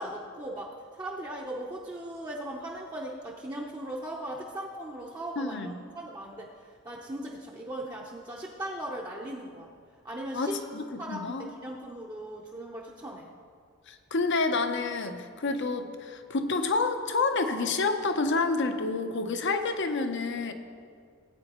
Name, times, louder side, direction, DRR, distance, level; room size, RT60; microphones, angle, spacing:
voice 1, 0.0-9.7 10.0-10.6 11.0-13.3, right 1 dB, 20° right, -4 dB, 0.7 m, -38 dB
voice 2, 5.4-5.7 10.3-11.5 13.9-20.5, left 3 dB, 55° left, 8 dB, 0.7 m, -29 dB
18.0 x 8.8 x 3.0 m, 2.2 s
head